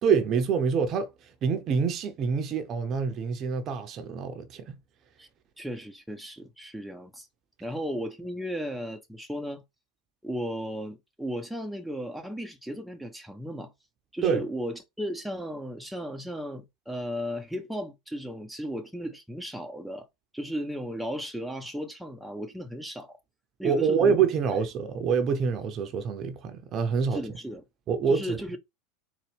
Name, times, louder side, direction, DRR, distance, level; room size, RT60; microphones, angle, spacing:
voice 1, 0.0-1.1 1.4-4.8 14.2-14.4 23.6-27.2 27.9-28.4, right 6 dB, 40° right, 0.7 m, -26 dB
voice 2, 5.6-7.3 7.6-9.6 10.2-13.7 14.1-20.1 20.3-23.2 23.6-24.2 27.1-27.6 28.1-28.6, equal, ahead, 0.7 m, -35 dB
4.1 x 2.3 x 3.5 m
figure-of-eight pair, 85°, 0 cm